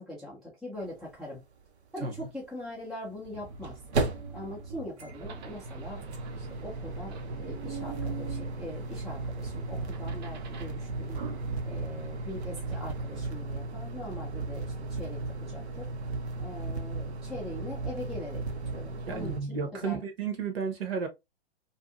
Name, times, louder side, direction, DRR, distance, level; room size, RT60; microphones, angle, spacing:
voice 1, 0.0-1.4 1.9-3.8 4.3-6.0 6.3-11.2 11.6-15.9 16.4-18.5 18.7-20.0, left 1 dB, ahead, 0.3 m, -42 dB
sound 1, 0.8-0.9 1.1-1.2 3.1-19.4, right 3 dB, 80° right, 0.7 m, -36 dB
sound 2, 3.3-13.2, right 5 dB, 40° right, 0.6 m, -44 dB
voice 2, 19.1-21.1, right 5 dB, 60° right, 1.0 m, -32 dB
2.7 x 2.3 x 2.3 m
hypercardioid pair, 120°, 33 cm